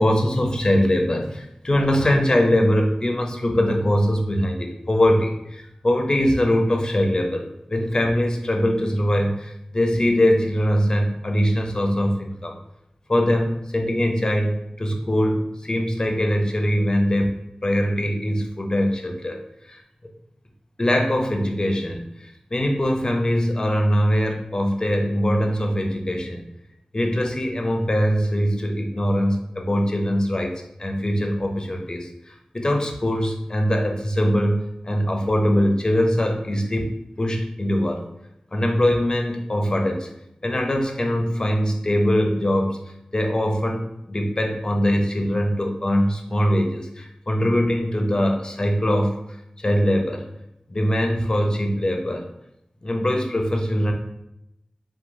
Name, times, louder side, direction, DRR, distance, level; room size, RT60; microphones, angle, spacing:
voice 1, 0.0-12.5 13.1-19.4 19.7-19.8 20.8-26.5 26.9-30.5 30.8-38.1 38.5-40.1 40.4-42.8 43.1-49.1 49.6-50.3 50.7-52.3 52.8-53.9, equal, 35° left, 3 dB, 0.4 m, -22 dB
2.9 x 2.2 x 2.5 m, 0.84 s
wide cardioid pair, 65°, 2 cm